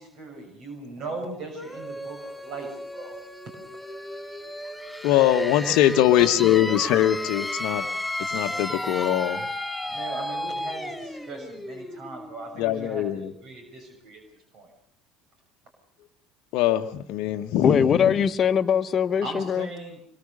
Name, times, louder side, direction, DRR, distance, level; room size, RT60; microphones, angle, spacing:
voice 1, 0.0-3.2 5.7-6.8 9.9-14.2 14.5-14.7 19.2-20.0, right 2 dB, 50° right, 6.5 m, -38 dB
sound 1, 1.5-13.1, left 1 dB, 5° left, 4.9 m, -34 dB
voice 2, 5.0-7.9 8.3-9.5 12.6-13.3 16.5-18.1, left 12 dB, 60° left, 1.2 m, -22 dB
voice 3, 17.6-19.7, left 7 dB, 40° left, 1.3 m, -22 dB
25.5 x 22.5 x 6.7 m
hypercardioid pair, 65°, 0 cm